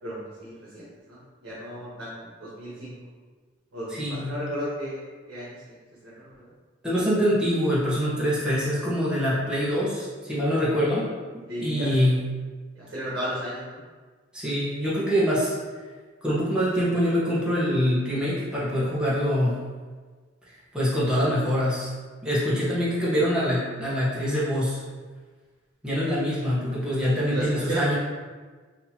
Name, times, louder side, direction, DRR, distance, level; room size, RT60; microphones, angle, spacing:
voice 1, 0.0-2.9 3.7-5.0 5.3-5.8 6.0-6.5 11.5-12.1 12.7-13.8 27.3-27.9, equal, 85° right, -9 dB, 1.1 m, -34 dB
voice 2, 3.9-4.3 6.8-11.1 11.6-12.2 14.3-15.5 16.2-19.5 20.7-21.9 22.2-24.8 25.8-28.0, equal, 5° right, -9 dB, 1.0 m, -24 dB
4.1 x 2.8 x 2.8 m, 1.4 s
head